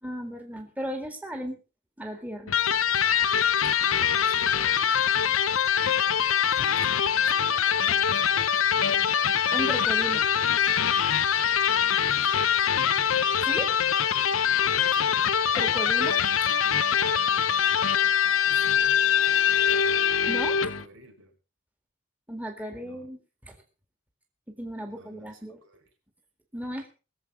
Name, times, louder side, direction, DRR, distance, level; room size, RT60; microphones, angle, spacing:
voice 1, 0.0-1.6 2.0-2.6 9.5-10.2 13.4-13.7 15.5-16.2 20.3-20.6 22.3-23.2 23.4-23.6 24.5-25.6 26.5-26.9, equal, 10° right, 3 dB, 1.9 m, -35 dB
Electric guitar, 2.5-20.8, left 8 dB, 85° left, 0.7 m, -23 dB
voice 2, 4.2-5.8 6.4-9.2 12.1-12.5 14.8-15.3 18.4-19.4 20.6-21.4 22.8-23.1 24.9-25.9, right 1 dB, 80° right, 3 dB, 4.4 m, -52 dB
22.0 x 7.7 x 4.7 m, 0.34 s
head